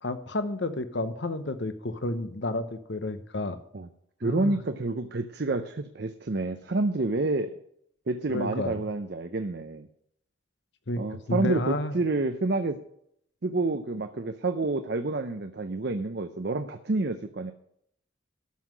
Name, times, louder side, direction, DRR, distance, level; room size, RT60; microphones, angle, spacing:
voice 1, 0.0-3.6 4.2-4.6 8.3-8.9 10.9-11.0 11.3-12.0, left 2 dB, 60° left, 10 dB, 0.9 m, -31 dB
voice 2, 4.2-7.5 8.1-9.9 11.0-12.8 13.4-17.5, right 2 dB, 55° right, 7 dB, 0.6 m, -28 dB
12.5 x 5.7 x 6.1 m, 0.70 s
head